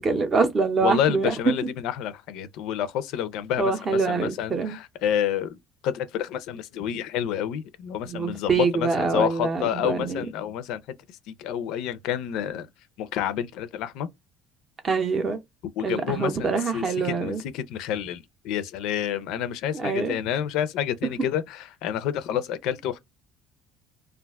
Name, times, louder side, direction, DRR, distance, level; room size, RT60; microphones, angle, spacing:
voice 1, 0.0-1.3 3.6-4.8 8.0-10.2 14.8-15.4 15.8-17.4 19.7-20.2, right 4 dB, 25° right, 0.6 m, -25 dB
voice 2, 0.8-5.6 5.8-10.8 11.3-12.7 13.0-14.1 15.8-23.0, left 9 dB, 70° left, 0.4 m, -29 dB
2.4 x 2.2 x 3.4 m
cardioid pair, 170°, 0 cm